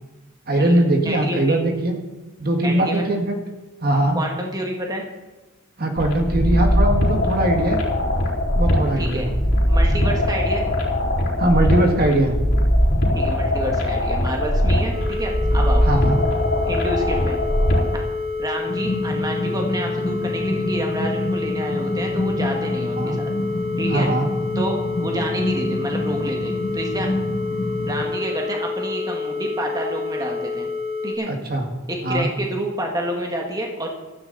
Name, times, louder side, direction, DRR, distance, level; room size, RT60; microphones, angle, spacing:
voice 1, 0.5-2.0 2.4-3.4 3.8-4.2 5.8-7.8 8.5-9.3 11.4-12.4 15.8-16.2 23.0-23.2 23.9-24.3 31.3-31.7 32.0-32.3, right 1 dB, 45° right, 3 dB, 1.8 m, -20 dB
voice 2, 1.0-1.6 2.6-3.1 4.1-5.0 9.0-9.3 9.7-10.7 13.1-15.8 16.6-17.4 18.4-23.3 23.8-24.1 24.6-27.1 27.9-30.7 31.0-31.3 31.9-33.9, right 1 dB, 15° right, 1 dB, 1.7 m, -29 dB
sound 1, 6.0-18.0, equal, 50° left, 4.2 m, -20 dB
sound 2, 14.9-31.1, left 4 dB, 90° right, 3.2 m, -28 dB
sound 3, 18.7-28.0, left 1 dB, 20° left, 5.3 m, -27 dB
16.0 x 13.5 x 4.1 m, 1.1 s
head